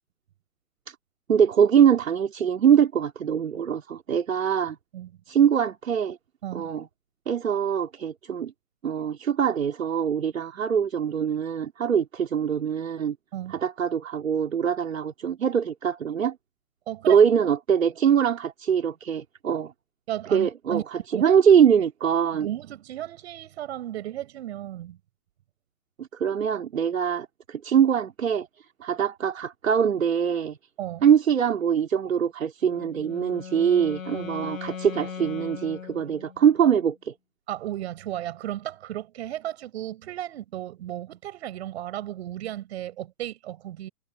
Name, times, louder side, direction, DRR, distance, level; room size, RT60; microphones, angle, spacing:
voice 1, 1.3-4.8 5.3-6.2 6.5-6.9 7.3-8.5 8.8-13.2 13.5-16.4 17.1-19.7 20.3-22.5 26.0-28.5 28.8-30.6 31.0-37.1, right 8 dB, 60° right, 4.0 m, -23 dB
voice 2, 16.9-17.2 20.1-20.8 21.1-21.2 22.3-25.0 30.8-31.1 34.1-34.3 37.5-43.9, right 12 dB, 45° right, 7.4 m, -34 dB
Wind instrument woodwind instrument, 32.6-36.6, left 7 dB, 65° left, 7.1 m, -39 dB
figure-of-eight pair, 125°, 44 cm